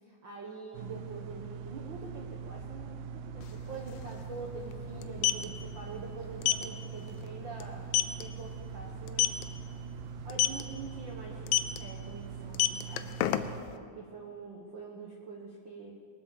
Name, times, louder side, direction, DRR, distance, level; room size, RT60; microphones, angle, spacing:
voice 1, 0.0-7.9 8.2-9.4 10.2-11.5 11.8-13.1 13.7-15.9, right 3 dB, 60° right, -1 dB, 1.2 m, -45 dB
sound 1, 0.7-13.6, right 6 dB, 80° right, 2.1 m, -42 dB
sound 2, 3.4-3.5 3.7-3.9 5.0-5.4 6.4-6.6 7.1-7.3 7.6-7.7 7.9-8.2 9.1-9.4 10.3-10.6 11.5-11.8 12.4-13.7, left 14 dB, 85° left, 2.4 m, -26 dB
21.0 x 7.9 x 7.1 m, 2.2 s
omnidirectional pair, 4.0 m